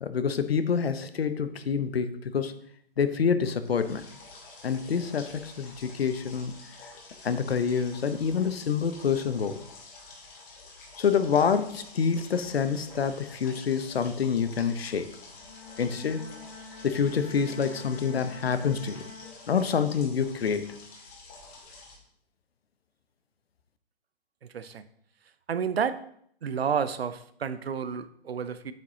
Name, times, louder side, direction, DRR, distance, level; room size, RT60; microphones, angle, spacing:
voice 1, 0.0-2.6 3.0-4.1 4.6-6.5 7.2-9.6 11.0-15.2 15.8-16.3 16.8-19.1 19.5-20.8, left 6 dB, 70° left, 12 dB, 0.8 m, -27 dB
sound 1, 3.6-22.0, left 3 dB, 35° left, 2.3 m, -49 dB
Bowed string instrument, 15.3-20.0, left 4 dB, 55° left, 3.3 m, -47 dB
voice 2, 24.5-24.8 25.5-26.0 26.4-28.7, right 7 dB, 75° right, 13 dB, 0.7 m, -30 dB
8.5 x 6.3 x 2.8 m, 0.65 s
figure-of-eight pair, 125°, 31 cm